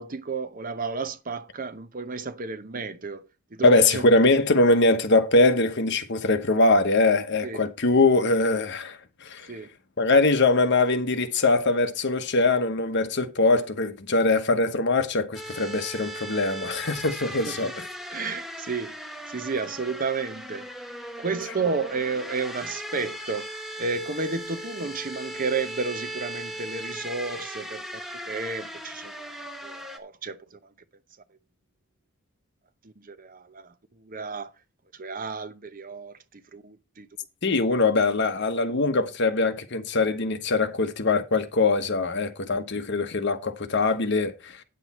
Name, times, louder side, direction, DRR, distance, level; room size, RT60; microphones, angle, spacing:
voice 1, 0.0-4.0 7.4-7.6 9.5-9.7 17.5-17.7 18.1-19.0 19.3-20.7 21.2-23.5 23.8-27.8 28.3-29.3 29.6-30.6 32.8-34.5 34.9-36.1 36.5-37.1 37.7-37.8, right 4 dB, 40° right, 0.8 m, -32 dB
voice 2, 3.6-9.5 10.0-17.8 37.4-44.6, left 3 dB, 55° left, 1.1 m, -22 dB
sound 1, 15.3-30.0, equal, ahead, 1.1 m, -38 dB
9.4 x 8.0 x 4.3 m
head